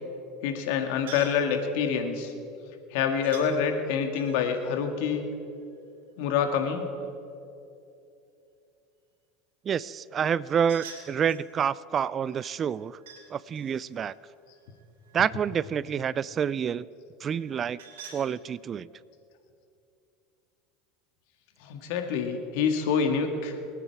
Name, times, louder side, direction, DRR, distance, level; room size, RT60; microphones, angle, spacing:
voice 1, 0.4-2.3 2.9-5.2 6.2-6.9 21.6-23.6, left 6 dB, 70° left, 6 dB, 1.8 m, -27 dB
sound 1, 1.1-1.5 3.2-3.5 4.1-5.9 10.4-11.5 12.4-13.3 13.5-15.4 17.3-18.2, right 6 dB, 85° right, 3.1 m, -47 dB
voice 2, 9.6-13.0 13.3-14.1 15.1-16.9 17.2-17.8 18.1-18.9, right 8 dB, 35° right, 20 dB, 0.3 m, -28 dB
28.0 x 9.5 x 4.7 m, 2.7 s
supercardioid pair, 100°, 0 cm